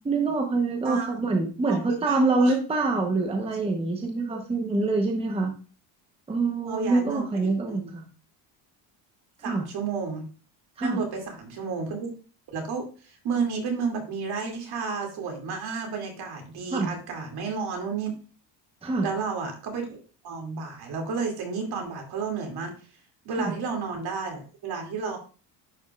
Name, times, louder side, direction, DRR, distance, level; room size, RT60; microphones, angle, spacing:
voice 1, 0.0-5.5 6.3-8.1 9.4-9.6 10.8-11.0 16.7-16.9 18.8-19.1 23.5-23.6, right 3 dB, 15° right, 2 dB, 0.9 m, -25 dB
voice 2, 1.7-2.5 4.3-4.4 6.6-7.8 9.4-10.3 10.8-12.1 12.5-12.9 13.2-18.1 19.0-20.0 20.2-22.7 23.2-25.2, right 5 dB, 55° right, 2 dB, 2.5 m, -31 dB
10.5 x 5.2 x 2.3 m, 0.36 s
cardioid pair, 135°, 46 cm